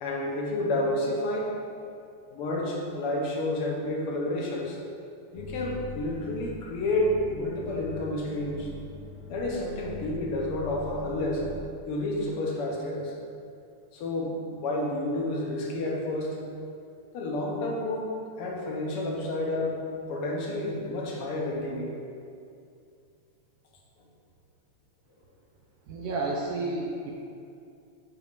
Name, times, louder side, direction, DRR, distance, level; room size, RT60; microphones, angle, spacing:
voice 1, 0.0-1.5 2.3-4.8 5.3-8.7 9.3-11.5 11.9-13.1 13.9-16.4 17.1-19.8 20.1-21.9, left 1 dB, 60° left, -2 dB, 1.8 m, -30 dB
sound 1, 5.4-11.6, equal, 80° left, 1.5 m, -42 dB
voice 2, 25.9-27.1, right 2 dB, 75° right, -1 dB, 1.5 m, -31 dB
7.1 x 4.3 x 6.7 m, 2.5 s
omnidirectional pair, 3.3 m